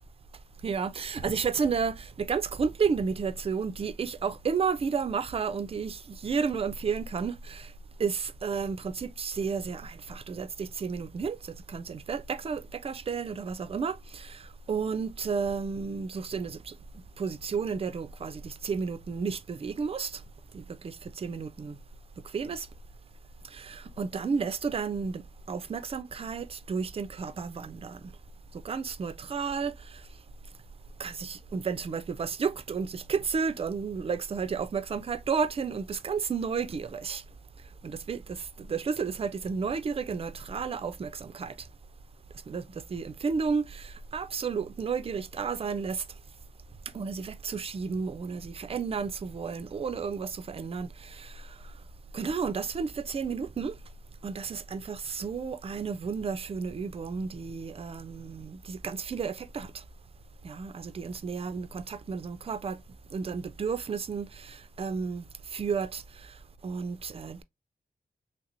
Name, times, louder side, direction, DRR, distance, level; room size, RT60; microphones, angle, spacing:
voice 1, 0.6-7.7 8.0-14.4 14.7-16.7 17.2-20.2 20.5-21.8 22.3-22.7 23.5-25.2 25.5-28.1 28.6-29.7 31.0-37.2 37.8-41.5 42.5-46.0 46.9-51.4 52.1-53.7 54.2-59.7 60.4-62.8 63.1-65.2 65.5-66.0 66.6-67.4, right 5 dB, 40° right, 0.4 m, -32 dB
3.1 x 2.9 x 2.5 m
cardioid pair, 65°, 16 cm